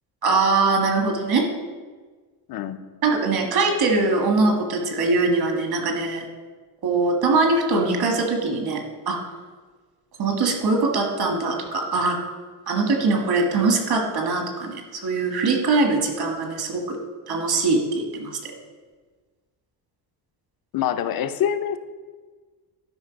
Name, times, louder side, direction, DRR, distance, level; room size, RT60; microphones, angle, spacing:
voice 1, 0.2-1.5 3.0-6.2 6.8-9.2 10.2-12.2 12.7-17.0 17.3-18.3, right 3 dB, 60° right, 3 dB, 1.7 m, -22 dB
voice 2, 2.5-2.8 20.7-21.8, left 9 dB, 55° left, 10 dB, 0.6 m, -25 dB
12.0 x 5.3 x 5.2 m, 1.4 s
cardioid pair, 165°, 42 cm